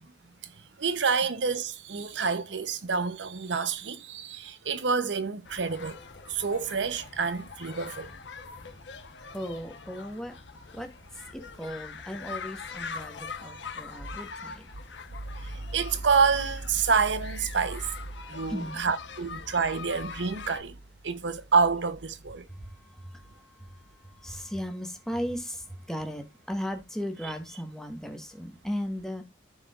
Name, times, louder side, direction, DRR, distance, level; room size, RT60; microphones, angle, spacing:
voice 1, 0.8-6.0 6.3-8.1 15.4-17.9 18.3-20.8 21.0-22.4 27.2-27.3, right 5 dB, 85° right, 0.8 m, -28 dB
sound 1, 5.4-20.6, left 5 dB, 80° left, 1.1 m, -43 dB
voice 2, 9.3-10.3 10.7-10.9 11.3-14.6 18.5-18.8 22.5-23.4 24.2-29.2, equal, 5° left, 1.4 m, -36 dB
14.5 x 5.0 x 2.5 m
head